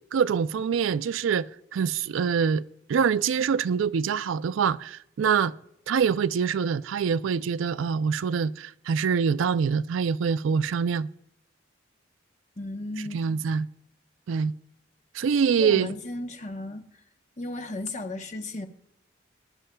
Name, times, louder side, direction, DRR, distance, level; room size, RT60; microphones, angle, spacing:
voice 1, 0.1-1.5 1.7-2.6 2.9-5.5 5.9-11.1 13.1-13.7 14.3-14.5 15.1-15.9, right 6 dB, 80° right, 0.4 m, -25 dB
voice 2, 12.6-13.2 15.6-16.8 17.4-18.7, left 2 dB, 35° left, 0.9 m, -34 dB
21.0 x 11.0 x 2.2 m
head